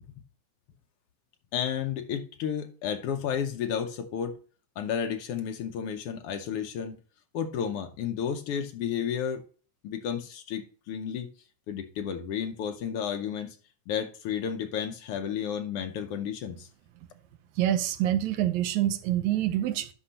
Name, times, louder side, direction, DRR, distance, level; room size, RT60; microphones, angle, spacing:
voice 1, 1.5-4.4 4.8-7.0 7.3-9.4 9.8-11.3 11.7-13.6 13.9-16.7, left 8 dB, 85° left, 1.2 m, -32 dB
voice 2, 17.6-19.9, right 12 dB, 75° right, 2.0 m, -26 dB
11.5 x 5.5 x 2.8 m
omnidirectional pair, 3.5 m